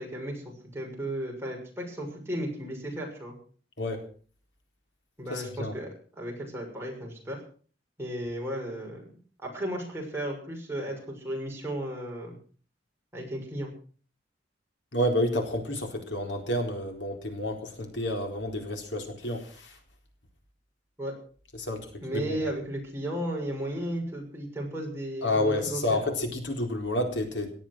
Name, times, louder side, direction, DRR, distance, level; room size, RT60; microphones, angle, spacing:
voice 1, 0.0-3.3 5.2-7.4 8.0-9.0 9.4-12.4 13.1-13.7 21.0-21.2 22.0-26.0, right 1 dB, 15° right, -1 dB, 6.5 m, -34 dB
voice 2, 5.3-5.7 14.9-19.8 21.6-21.9 22.1-22.4 25.2-27.5, left 1 dB, 80° left, 4 dB, 4.1 m, -29 dB
18.0 x 12.0 x 6.2 m, 0.43 s
head